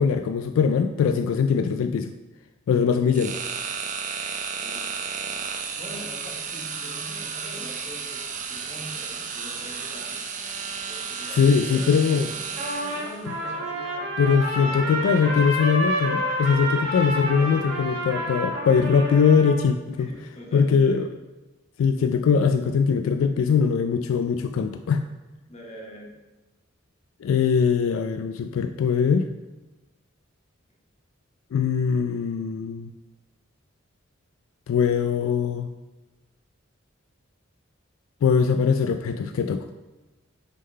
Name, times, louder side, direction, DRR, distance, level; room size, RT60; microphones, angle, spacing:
voice 1, 0.0-2.1 2.7-3.4 11.4-12.3 14.2-20.1 20.5-21.1 21.8-25.0 27.2-29.3 31.5-32.9 34.7-35.7 38.2-39.7, left 6 dB, 75° left, 9 dB, 0.3 m, -21 dB
sound 1, 3.1-13.2, right 6 dB, 40° right, 0.6 m, -33 dB
voice 2, 4.6-4.9 5.8-10.2 10.9-12.4 12.8-15.4 17.4-18.5 20.0-20.9 25.5-26.1, equal, 30° left, -2 dB, 1.4 m, -43 dB
Trumpet, 12.6-19.7, equal, 80° right, 2.1 m, -29 dB
6.4 x 3.8 x 5.4 m, 1.1 s
head